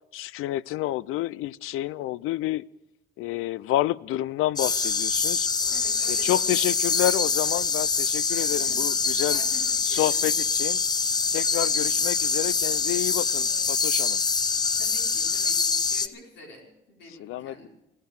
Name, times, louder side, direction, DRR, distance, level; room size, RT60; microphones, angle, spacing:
voice 1, 0.1-2.6 3.2-5.5 6.1-9.4 9.8-10.8 11.3-14.2 17.2-17.7, left 15 dB, 90° left, 0.4 m, -29 dB
sound 1, 4.6-16.1, left 5 dB, 20° left, 0.5 m, -25 dB
voice 2, 5.7-7.0 8.3-8.8 9.3-10.4 13.4-13.7 14.8-17.7, left 1 dB, 60° left, 4.6 m, -48 dB
16.5 x 13.5 x 6.5 m
cardioid pair, 175°, 21 cm